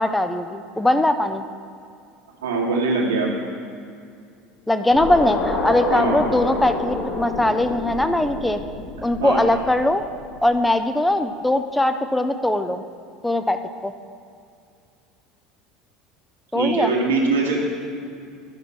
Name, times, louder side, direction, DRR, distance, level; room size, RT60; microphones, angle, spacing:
voice 1, 0.0-1.4 4.7-8.6 9.0-10.0 10.4-12.8 13.2-13.9 16.5-16.9, left 1 dB, 5° left, 8 dB, 0.5 m, -20 dB
voice 2, 2.4-3.3 5.9-6.2 9.2-9.4 16.5-17.6, right 3 dB, 75° right, -2 dB, 1.8 m, -22 dB
sound 1, 4.9-10.2, left 3 dB, 50° left, 1.8 m, -28 dB
10.5 x 5.8 x 6.2 m, 2.3 s
figure-of-eight pair, 70°, 0 cm